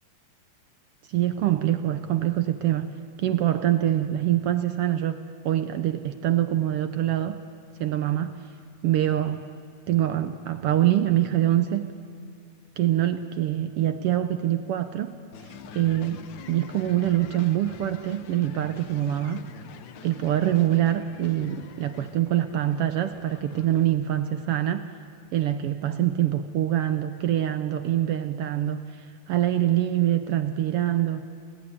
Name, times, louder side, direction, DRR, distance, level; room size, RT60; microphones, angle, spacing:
voice 1, 1.1-2.9 3.2-5.2 5.4-7.4 7.8-8.3 8.8-9.4 9.9-11.9 12.8-15.1 15.4-16.2 16.5-19.5 20.0-24.8 25.3-31.3, right 12 dB, 75° right, 10 dB, 1.4 m, -24 dB
sound 1, 15.3-23.9, left 7 dB, 85° left, 1.0 m, -45 dB
29.5 x 13.0 x 9.9 m, 2.1 s
omnidirectional pair, 3.3 m